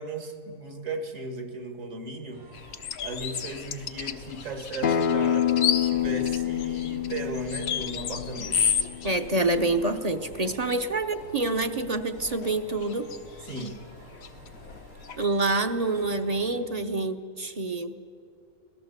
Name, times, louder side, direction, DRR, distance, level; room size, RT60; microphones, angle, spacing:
voice 1, 0.0-2.5 3.0-8.6 10.7-10.8 13.4-13.8, right 2 dB, 65° right, 7 dB, 2.3 m, -36 dB
sound 1, 2.3-16.6, equal, 90° right, 7.6 m, -50 dB
sound 2, 2.5-15.3, left 7 dB, 85° left, 1.4 m, -34 dB
Acoustic guitar, 4.8-10.0, left 10 dB, 50° left, 0.7 m, -28 dB
voice 2, 9.0-13.1 15.2-18.0, right 2 dB, 35° right, 8 dB, 0.8 m, -27 dB
25.0 x 18.0 x 8.1 m, 2.4 s
omnidirectional pair, 1.4 m